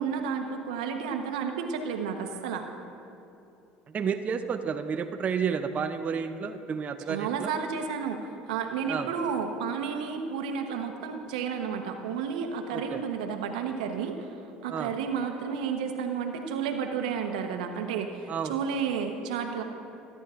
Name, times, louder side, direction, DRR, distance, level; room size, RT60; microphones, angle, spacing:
voice 1, 0.0-2.7 7.1-14.3 14.6-19.6, right 6 dB, 85° right, 5 dB, 1.0 m, -31 dB
voice 2, 3.9-7.5 8.9-9.1 12.7-13.0 14.7-14.9 18.3-18.5, right 6 dB, 40° right, 7 dB, 0.6 m, -31 dB
24.0 x 11.0 x 2.5 m, 2.8 s
hypercardioid pair, 75°, 4 cm